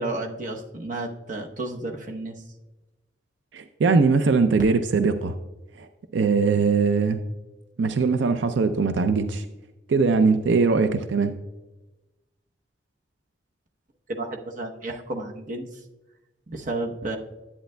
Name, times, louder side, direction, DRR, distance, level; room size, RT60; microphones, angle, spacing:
voice 1, 0.0-2.4 14.1-15.6 16.5-17.2, right 2 dB, 45° right, 2 dB, 0.9 m, -32 dB
voice 2, 3.5-5.3 5.8-5.9 6.1-7.2 7.8-9.4 9.9-11.3, right 4 dB, 85° right, 9 dB, 0.4 m, -21 dB
10.5 x 8.7 x 2.2 m, 1.1 s
head